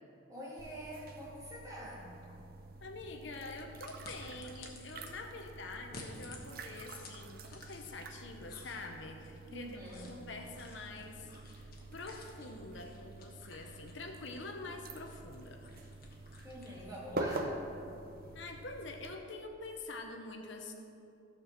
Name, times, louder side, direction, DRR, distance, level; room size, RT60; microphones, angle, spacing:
voice 1, 0.3-2.1 9.5-10.1 16.4-17.6, equal, 15° right, -6 dB, 2.1 m, -45 dB
sound 1, 0.6-19.1, right 2 dB, 45° right, 0.6 m, -46 dB
voice 2, 2.8-15.9 18.3-20.7, left 3 dB, 65° left, 4 dB, 0.8 m, -46 dB
sound 2, 3.8-5.1 5.8-8.1 8.4-17.1, left 3 dB, 50° left, 1.3 m, -54 dB
13.5 x 4.6 x 6.5 m, 2.7 s
head